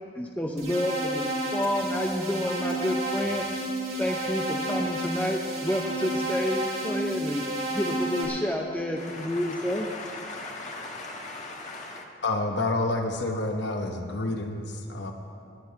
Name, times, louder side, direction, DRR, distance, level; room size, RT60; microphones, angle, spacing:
voice 1, 0.1-1.2 1.5-3.4 4.0-7.4 7.7-9.9, left 1 dB, 10° left, 0.6 m, -29 dB
sound 1, 0.6-8.2, right 1 dB, 55° right, 3.6 m, -31 dB
voice 2, 9.0-12.0, left 2 dB, 40° left, 1.6 m, -39 dB
voice 3, 12.2-15.1, left 2 dB, 65° left, 1.0 m, -29 dB
19.5 x 10.5 x 4.7 m
head